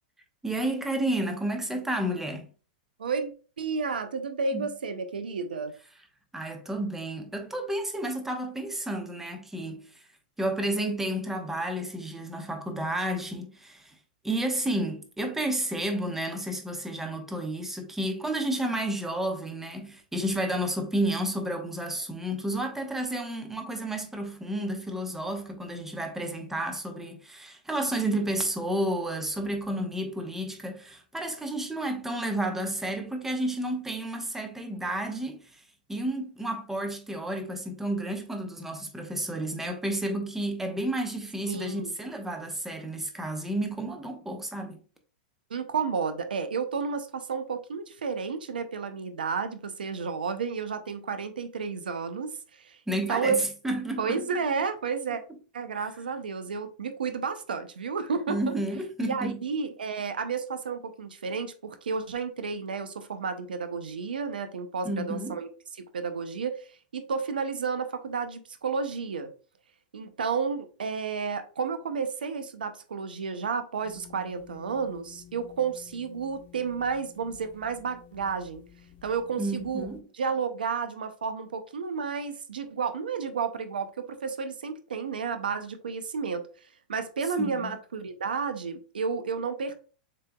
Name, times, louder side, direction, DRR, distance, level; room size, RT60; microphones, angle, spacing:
voice 1, 0.4-2.5 4.5-4.7 6.3-10.0 10.4-13.9 14.2-35.6 35.9-44.8 52.9-54.3 55.7-55.9 58.3-59.4 64.8-65.4 79.4-80.0 87.4-87.7, right 1 dB, 5° right, 0.9 m, -31 dB
voice 2, 3.0-3.3 3.6-5.7 41.5-41.9 45.5-53.4 54.0-55.2 55.5-58.5 59.0-65.5 65.8-66.7 66.9-69.3 69.9-78.6 79.0-79.9 80.1-86.5 86.9-89.7, right 5 dB, 85° right, 0.5 m, -31 dB
sound 1, 73.8-80.0, left 10 dB, 35° left, 1.1 m, -52 dB
7.3 x 2.9 x 2.3 m
hypercardioid pair, 110°, 5 cm